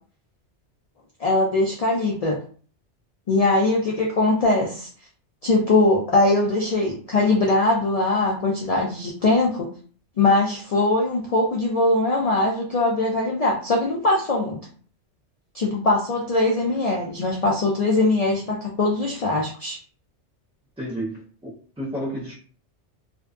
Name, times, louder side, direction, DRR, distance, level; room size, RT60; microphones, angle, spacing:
voice 1, 1.2-2.4 3.3-4.9 5.4-9.7 10.2-14.6 15.5-19.8, left 2 dB, 75° left, -2 dB, 0.3 m, -21 dB
voice 2, 20.8-22.3, equal, 10° right, -8 dB, 0.4 m, -32 dB
2.5 x 2.2 x 2.3 m, 0.43 s
omnidirectional pair, 1.2 m